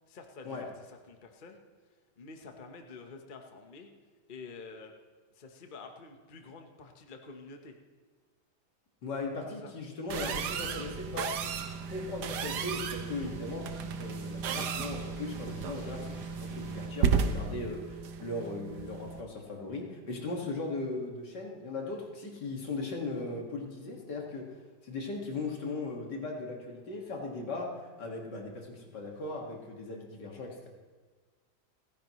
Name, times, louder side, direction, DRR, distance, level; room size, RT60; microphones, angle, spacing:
voice 1, 0.1-1.6 2.2-3.9 4.3-4.9 5.3-7.7 9.6-9.7, left 4 dB, 35° left, 4 dB, 1.1 m, -48 dB
voice 2, 9.0-11.4 11.9-13.7 14.0-24.5 24.8-30.7, left 3 dB, 75° left, 0 dB, 2.6 m, -38 dB
sound 1, 10.1-19.2, right 6 dB, 75° right, 1.4 m, -34 dB
sound 2, 10.7-16.9, right 1 dB, 55° right, 5.1 m, -51 dB
30.0 x 10.5 x 3.1 m, 1.4 s
omnidirectional pair, 1.8 m